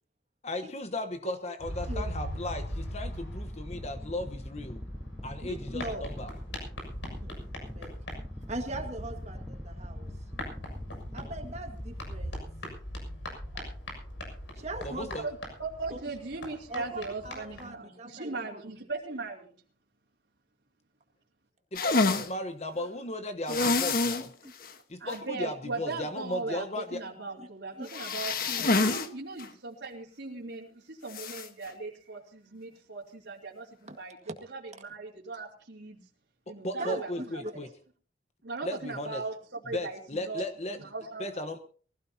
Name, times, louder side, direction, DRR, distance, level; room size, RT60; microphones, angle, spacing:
voice 1, 0.4-4.8 5.2-6.3 14.8-15.3 21.7-24.3 24.9-27.0 36.6-37.7 38.6-39.2 39.7-40.8 41.2-41.6, left 1 dB, 35° left, 8 dB, 1.1 m, -36 dB
voice 2, 1.2-1.5 1.9-2.0 5.4-6.0 7.2-7.9 8.5-10.1 11.1-12.4 13.5-13.7 14.5-15.2 15.9-16.0 16.7-18.6 24.4-24.5 27.4-27.5 27.8-27.9 33.9-34.0 34.2-34.4 36.8-37.0, right 2 dB, 35° right, 4 dB, 1.8 m, -40 dB
sound 1, 1.6-17.7, equal, 90° left, 7.0 m, -41 dB
sound 2, 3.3-12.0, equal, 5° left, 1.0 m, -42 dB
voice 3, 15.2-19.5 25.0-36.1 36.5-37.1 38.4-40.4 40.8-41.3, right 3 dB, 75° right, -4 dB, 3.1 m, -39 dB
sound 3, 21.8-22.3 23.5-24.3 24.6-24.7 25.1-25.2 27.9-29.1 29.4-29.5 31.1-31.5, left 3 dB, 50° left, 1.3 m, -27 dB
23.0 x 16.5 x 2.8 m, 0.42 s
head